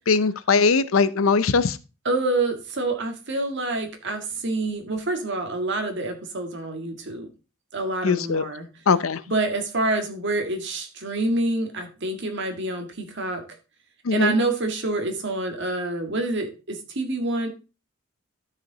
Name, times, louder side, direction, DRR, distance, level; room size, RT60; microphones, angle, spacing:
voice 1, 0.1-1.8 8.0-8.4 8.9-9.2 14.1-14.3, left 4 dB, 85° left, 15 dB, 0.6 m, -20 dB
voice 2, 2.0-7.3 7.7-8.7 9.3-13.4 14.1-17.5, right 2 dB, 60° right, 5 dB, 1.8 m, -27 dB
12.0 x 5.0 x 4.0 m, 0.32 s
head